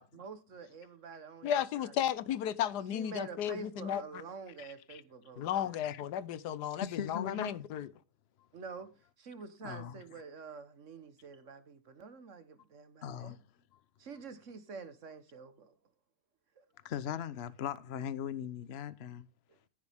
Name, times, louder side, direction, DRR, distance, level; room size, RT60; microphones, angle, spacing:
voice 1, 0.0-1.9 2.9-5.7 8.5-8.9 9.2-13.4 14.0-15.7 16.6-16.7 19.5-19.6, right 5 dB, 50° right, 1.5 m, -47 dB
voice 2, 1.4-4.2 5.4-7.9, left 10 dB, 90° left, 1.4 m, -34 dB
voice 3, 4.6-5.0 5.8-6.0 6.8-7.5 9.6-10.0 13.0-13.4 16.8-19.3, left 9 dB, 50° left, 0.9 m, -39 dB
14.5 x 8.4 x 3.6 m
omnidirectional pair, 1.7 m